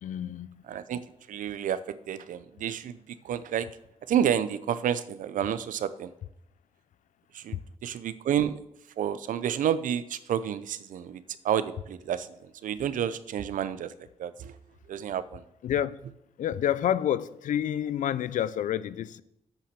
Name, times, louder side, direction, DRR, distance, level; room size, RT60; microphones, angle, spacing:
voice 1, 0.0-0.5 15.6-16.0 16.4-19.2, left 10 dB, 75° left, 0.4 m, -28 dB
voice 2, 0.6-3.7 4.1-6.1 7.3-8.6 9.0-12.3 12.6-13.9 14.2-14.6 14.9-15.4, right 9 dB, 80° right, 0.6 m, -30 dB
8.4 x 5.7 x 7.4 m
cardioid pair, 105°, 13 cm